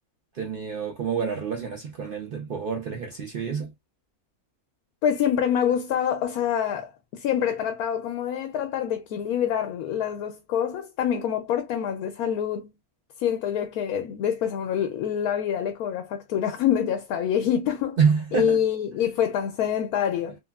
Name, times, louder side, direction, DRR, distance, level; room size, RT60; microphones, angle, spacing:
voice 1, 0.3-3.7 18.0-18.6, right 6 dB, 60° right, 0.5 m, -27 dB
voice 2, 5.0-12.7 13.2-18.0 18.3-20.4, left 9 dB, 80° left, 1.0 m, -26 dB
3.2 x 2.2 x 2.2 m
omnidirectional pair, 1.5 m